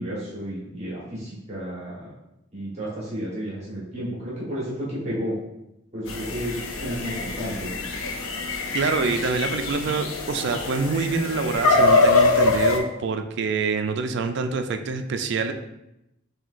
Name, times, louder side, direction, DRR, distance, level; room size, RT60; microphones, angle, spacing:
voice 1, 0.0-2.1 2.5-5.4 5.9-6.6 6.8-7.7, equal, 35° right, -7 dB, 1.3 m, -32 dB
sound 1, 6.1-12.8, left 3 dB, 80° left, 0.5 m, -23 dB
voice 2, 8.7-15.5, right 4 dB, 60° right, 7 dB, 0.4 m, -26 dB
5.8 x 2.7 x 2.5 m, 0.88 s
head